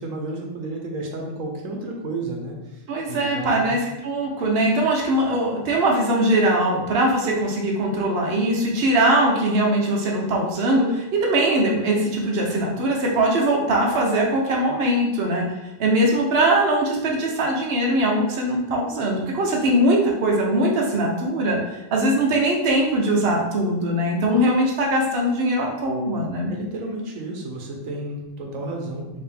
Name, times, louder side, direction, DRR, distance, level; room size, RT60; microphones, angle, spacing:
voice 1, 0.0-3.7 26.5-29.2, right 2 dB, 75° right, 1 dB, 1.3 m, -32 dB
voice 2, 2.9-15.4 15.8-26.5, right 1 dB, 50° right, -2 dB, 1.0 m, -21 dB
4.7 x 3.1 x 3.5 m, 0.98 s
omnidirectional pair, 1.4 m